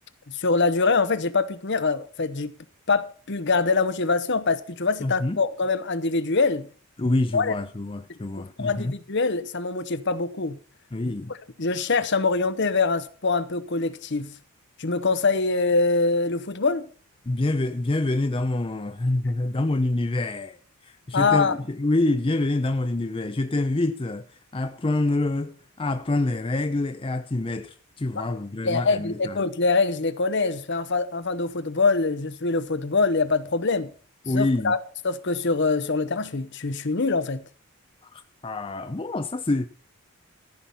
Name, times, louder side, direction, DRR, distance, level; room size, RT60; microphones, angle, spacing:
voice 1, 0.3-2.5 2.9-6.7 7.3-7.5 8.6-10.6 11.3-14.3 14.8-16.9 21.1-21.6 28.1-28.3 28.6-33.9 34.3-34.8 35.0-37.4, left 4 dB, 55° left, 0.9 m, -24 dB
voice 2, 5.0-5.4 7.0-9.0 10.9-11.3 17.3-20.6 20.8-24.3 24.5-29.4 34.3-34.7 38.1-39.7, left 2 dB, 25° left, 0.5 m, -26 dB
14.5 x 5.9 x 7.0 m
head